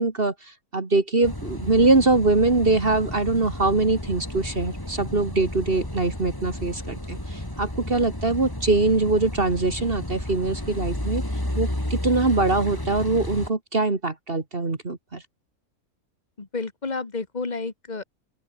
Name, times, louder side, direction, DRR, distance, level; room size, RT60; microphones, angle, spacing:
voice 1, 0.0-11.2 11.6-15.2, right 3 dB, 40° right, 2.3 m, -23 dB
Car passing by / Idling / Accelerating revving vroom, 1.2-13.5, left 1 dB, 15° left, 4.0 m, -32 dB
voice 2, 16.4-18.0, left 4 dB, 30° left, 1.9 m, -31 dB
open air
omnidirectional pair, 1.5 m